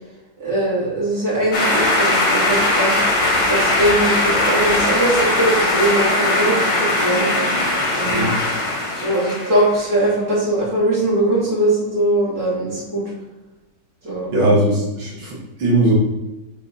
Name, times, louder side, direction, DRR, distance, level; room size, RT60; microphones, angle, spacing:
voice 1, 0.4-2.9 3.5-7.3 7.9-8.3 9.0-13.0 14.0-14.3, right 1 dB, 55° right, -8 dB, 3.4 m, -20 dB
sound 1, 1.5-9.8, left 2 dB, 75° left, 2.5 m, -19 dB
voice 2, 14.3-15.9, right 1 dB, 85° right, -4 dB, 2.5 m, -19 dB
8.1 x 4.4 x 4.2 m, 1.0 s
omnidirectional pair, 1.9 m